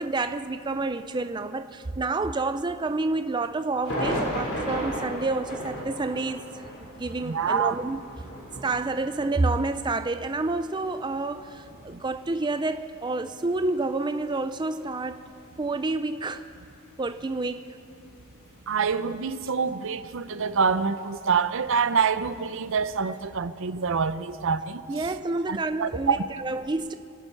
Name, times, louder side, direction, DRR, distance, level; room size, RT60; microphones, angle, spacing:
voice 1, 0.0-8.0 8.6-15.2 15.6-16.5 17.0-17.6 24.9-26.9, right 3 dB, 20° right, 0.4 m, -29 dB
sound 1, 3.8-19.0 19.4-19.5 20.8-23.2, equal, 75° left, 4.9 m, -38 dB
voice 2, 7.2-7.8 18.7-24.8 25.5-26.2, right 5 dB, 65° right, 0.6 m, -26 dB
26.5 x 11.0 x 4.6 m
head